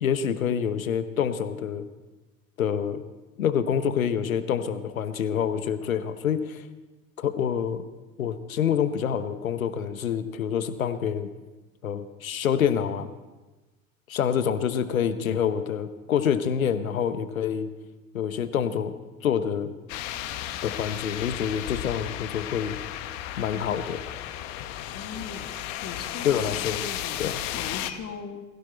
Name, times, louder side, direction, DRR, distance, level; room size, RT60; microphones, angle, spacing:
voice 1, 0.0-1.9 2.6-3.0 3.4-6.6 7.2-7.8 8.2-11.3 11.8-13.1 14.1-17.7 18.1-18.9 19.2-19.7 20.6-22.8 23.4-24.0 26.2-26.8 27.2-27.4, left 8 dB, 80° left, 12 dB, 1.1 m, -27 dB
sound 1, 19.9-27.9, left 12 dB, 65° left, 1.2 m, -34 dB
voice 2, 24.9-25.5 25.8-27.2 27.5-28.4, left 6 dB, 35° left, 5 dB, 2.1 m, -39 dB
20.5 x 16.0 x 4.4 m, 1.2 s
figure-of-eight pair, 65°, 41 cm